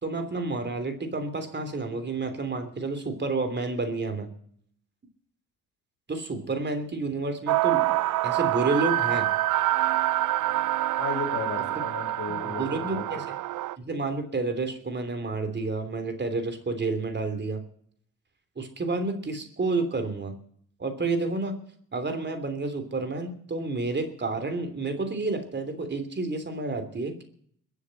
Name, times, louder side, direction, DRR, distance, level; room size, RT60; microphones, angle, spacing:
voice 1, 0.0-4.3 6.1-7.9 8.2-9.3 12.3-13.3 13.8-17.6 18.6-20.3 20.8-21.6 21.9-27.2, right 3 dB, 35° right, 7 dB, 3.2 m, -30 dB
sound 1, 7.5-13.8, right 16 dB, 70° right, 0.5 m, -26 dB
voice 2, 11.0-13.0, left 5 dB, 65° left, 5 dB, 3.4 m, -35 dB
21.5 x 7.4 x 7.8 m, 0.64 s
supercardioid pair, 70°, 32 cm